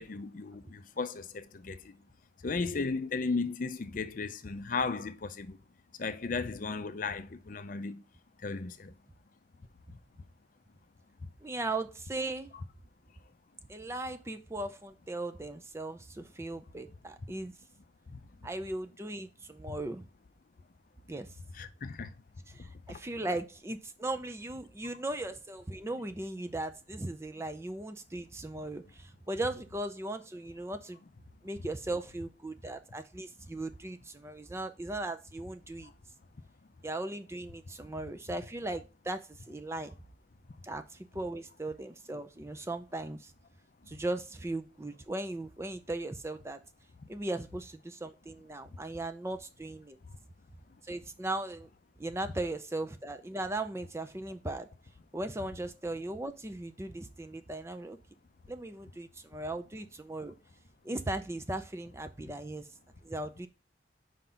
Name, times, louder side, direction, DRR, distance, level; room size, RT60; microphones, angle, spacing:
voice 1, 0.0-1.9 2.4-5.6 6.0-8.0 8.4-8.9 19.7-19.8 21.5-22.1 22.9-23.0, left 4 dB, 45° left, 0.5 m, -35 dB
voice 2, 11.4-12.5 13.7-17.5 18.4-20.0 21.1-21.3 22.5-31.0 31.4-35.9 36.8-39.9 40.6-43.3 43.9-46.6 47.1-50.0 50.8-51.7 52.0-54.7 55.1-58.0 58.5-60.3 60.8-62.6 63.0-63.5, right 2 dB, 15° right, 0.4 m, -38 dB
5.0 x 3.9 x 5.6 m
head